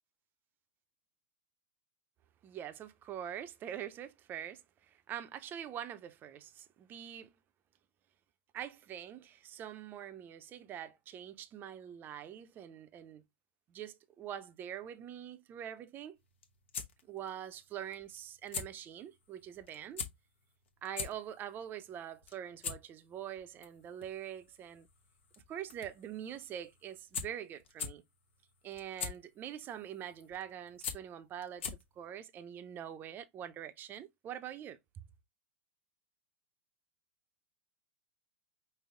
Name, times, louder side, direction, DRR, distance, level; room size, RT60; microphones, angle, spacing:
voice 1, 2.4-7.3 8.5-13.2 13.7-16.2 17.1-20.1 20.8-24.9 25.5-28.0 28.6-35.0, right 10 dB, 30° right, 0.5 m, -44 dB
sound 1, 16.2-32.1, left 6 dB, 70° left, 1.0 m, -45 dB
5.2 x 2.0 x 3.6 m
hypercardioid pair, 110°, 7 cm